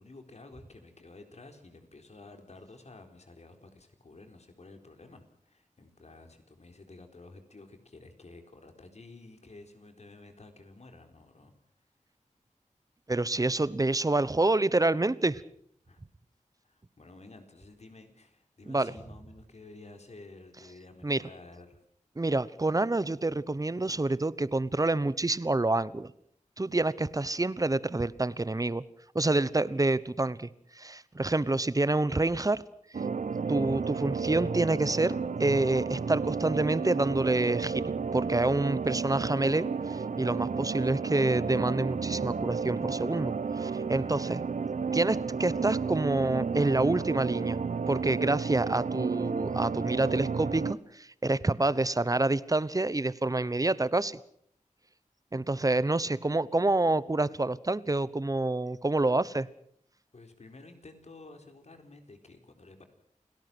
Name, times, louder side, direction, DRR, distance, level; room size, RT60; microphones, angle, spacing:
voice 1, 0.0-11.5 15.9-16.0 16.6-21.8 44.0-44.3 60.1-62.8, left 2 dB, 55° left, 5 dB, 4.2 m, -52 dB
voice 2, 13.1-15.4 18.7-18.9 21.0-21.2 22.2-26.1 26.6-28.8 29.1-30.5 30.7-32.6 33.5-44.4 44.9-47.6 47.9-54.2 55.3-59.5, right 2 dB, 25° right, 18 dB, 1.0 m, -27 dB
sound 1, 32.9-50.7, right 5 dB, 70° right, 0.9 m, -32 dB
29.0 x 18.5 x 6.2 m, 0.65 s
wide cardioid pair, 75°, 13 cm